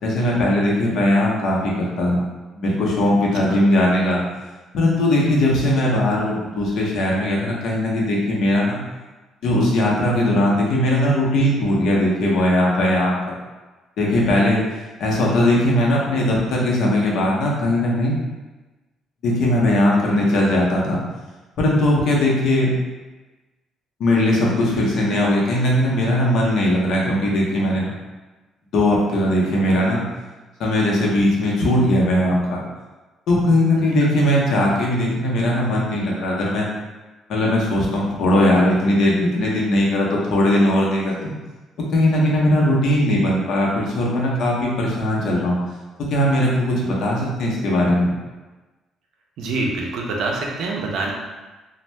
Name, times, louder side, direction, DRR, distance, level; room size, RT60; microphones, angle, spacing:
voice 1, 0.0-2.2 2.5-4.2 4.7-8.8 9.4-13.3 14.0-14.6 15.0-18.2 19.2-21.0 21.6-22.7 24.0-27.9 28.7-30.0 30.6-32.6 33.3-36.7 37.3-41.3 41.9-45.6 46.0-48.1, left 1 dB, 55° left, -3 dB, 0.6 m, -19 dB
voice 2, 49.4-51.1, right 3 dB, 65° right, -1 dB, 0.5 m, -25 dB
2.6 x 2.1 x 3.2 m, 1.2 s
cardioid pair, 165°, 0 cm